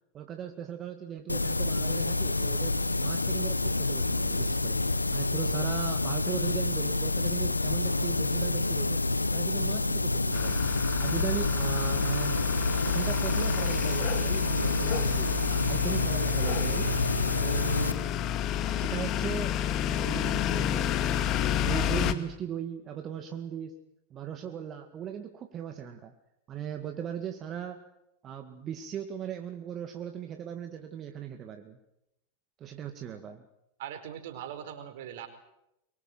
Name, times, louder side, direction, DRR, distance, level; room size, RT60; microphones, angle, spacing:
voice 1, 0.1-9.0 9.3-10.6 11.0-12.5 12.9-16.9 17.4-18.2 18.6-19.6 19.9-21.1 21.6-23.8 24.1-26.1 26.5-27.8 28.2-31.8 32.6-33.5, right 9 dB, 35° right, 6 dB, 2.1 m, -38 dB
sound 1, 1.3-17.9, left 2 dB, 90° left, 1.1 m, -28 dB
sound 2, 10.3-22.1, left 10 dB, 40° left, 2.1 m, -31 dB
voice 2, 33.8-35.3, right 10 dB, 60° right, 8 dB, 4.5 m, -40 dB
24.0 x 23.0 x 7.9 m, 0.85 s
figure-of-eight pair, 90°, 0 cm